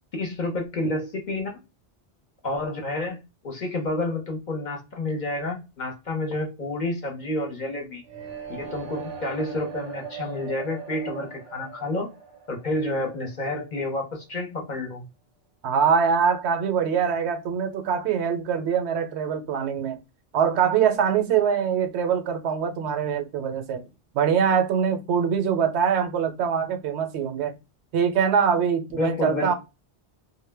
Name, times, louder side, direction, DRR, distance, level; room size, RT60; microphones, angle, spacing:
voice 1, 0.1-1.5 2.4-3.2 3.4-8.0 8.5-12.1 12.5-15.1 28.9-29.5, left 2 dB, 50° left, 0.7 m, -29 dB
sound 1, 8.0-14.0, right 7 dB, 45° right, 0.6 m, -40 dB
voice 2, 15.6-20.0 20.3-23.9 24.1-27.6 27.9-29.5, right 7 dB, 75° right, 0.8 m, -23 dB
2.1 x 2.1 x 3.2 m
omnidirectional pair, 1.2 m